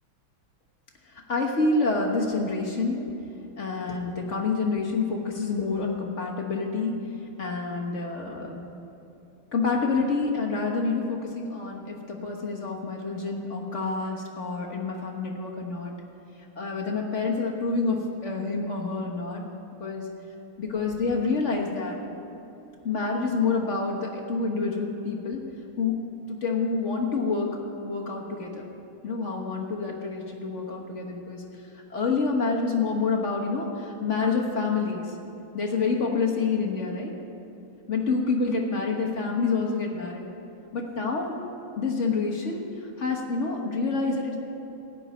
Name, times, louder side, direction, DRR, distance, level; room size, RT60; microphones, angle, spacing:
voice 1, 1.3-3.0 3.6-7.0 7.4-8.6 9.5-15.9 16.6-19.5 19.8-20.0 20.6-22.0 22.8-25.4 25.8-26.0 26.3-27.5 27.8-28.6 29.0-31.4 31.9-35.1 35.5-37.1 37.9-40.3 40.7-41.4 41.8-42.6 43.0-44.4, left 4 dB, 40° left, 0 dB, 1.3 m, -27 dB
16.5 x 5.5 x 9.0 m, 3.0 s
omnidirectional pair, 2.4 m